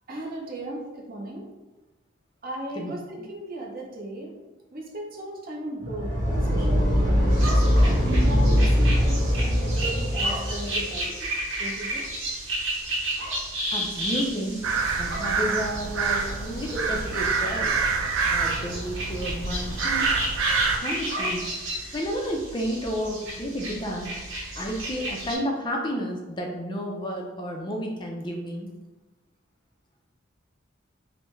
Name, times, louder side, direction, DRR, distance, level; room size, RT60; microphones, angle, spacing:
voice 1, 0.1-1.5 2.4-4.3 4.7-6.1 6.5-7.6 8.1-11.1 11.6-12.1, right 1 dB, 45° right, -1 dB, 0.8 m, -36 dB
sound 1, 5.8-11.0, equal, 20° right, 1.5 m, -22 dB
sound 2, 7.3-25.4, right 1 dB, 70° right, 1.2 m, -33 dB
voice 2, 13.7-14.5 15.0-17.8 18.3-20.1 20.8-21.5 21.9-24.1 24.6-28.7, equal, 20° left, 0 dB, 0.4 m, -31 dB
sound 3, 14.6-20.8, right 5 dB, 90° right, 0.5 m, -27 dB
5.4 x 2.1 x 3.1 m, 1.1 s
head